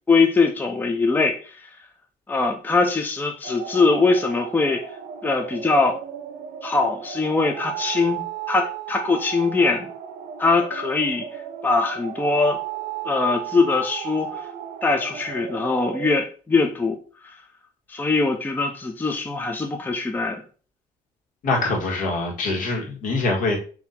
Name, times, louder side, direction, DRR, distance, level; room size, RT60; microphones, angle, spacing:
voice 1, 0.1-1.5 2.3-4.9 5.2-6.0 6.6-9.9 10.4-11.3 11.6-12.6 13.0-14.4 14.8-17.0 17.9-20.4, left 3 dB, 15° left, 4 dB, 0.5 m, -22 dB
sound 1, 3.4-16.2, right 10 dB, 75° right, 0.6 m, -35 dB
voice 2, 21.4-23.6, left 3 dB, 75° left, 0 dB, 1.6 m, -24 dB
3.9 x 2.8 x 4.2 m, 0.39 s
cardioid pair, 125°, 14 cm